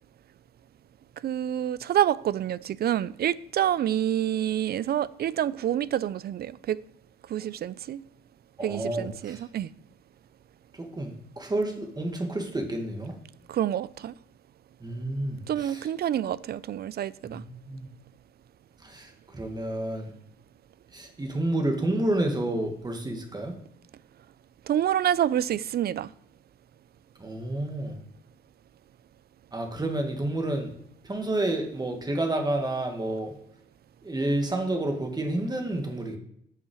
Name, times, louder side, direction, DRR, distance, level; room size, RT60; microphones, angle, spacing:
voice 1, 1.2-6.8 7.3-8.0 8.6-9.7 13.5-14.1 15.5-17.4 24.7-26.1, right 11 dB, 55° right, 0.4 m, -27 dB
voice 2, 8.6-9.4 10.7-13.2 14.8-15.9 17.2-17.9 18.8-20.1 20.9-23.5 27.2-28.0 29.5-30.7 31.0-33.4 34.0-36.2, right 1 dB, 20° right, 1.9 m, -30 dB
7.2 x 5.8 x 6.3 m
cardioid pair, 90°, 20 cm